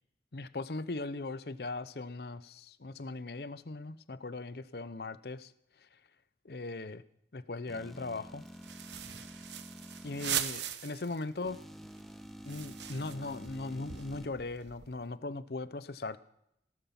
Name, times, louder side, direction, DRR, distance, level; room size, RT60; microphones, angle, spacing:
voice 1, 0.3-5.5 5.8-6.0 6.4-7.0 7.3-8.4 10.0-11.6 12.4-16.2, left 3 dB, 60° left, 0.7 m, -39 dB
sound 1, 7.7-10.3 11.4-14.3, equal, ahead, 1.0 m, -49 dB
sound 2, 8.5-11.2 11.5-11.6 11.9-15.0, right 10 dB, 80° right, 1.0 m, -40 dB
17.5 x 12.5 x 5.9 m
head